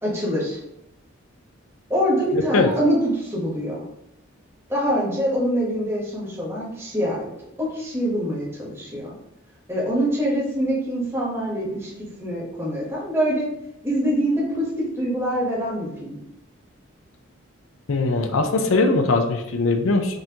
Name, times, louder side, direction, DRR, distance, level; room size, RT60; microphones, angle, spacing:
voice 1, 0.0-0.6 1.9-3.8 4.7-7.3 7.6-9.1 9.7-11.9 12.2-13.5 13.8-14.7 15.0-16.2, equal, 10° right, -5 dB, 1.1 m, -24 dB
voice 2, 2.3-2.7 17.9-20.2, left 3 dB, 80° left, 6 dB, 0.6 m, -21 dB
5.3 x 2.8 x 2.9 m, 0.82 s
head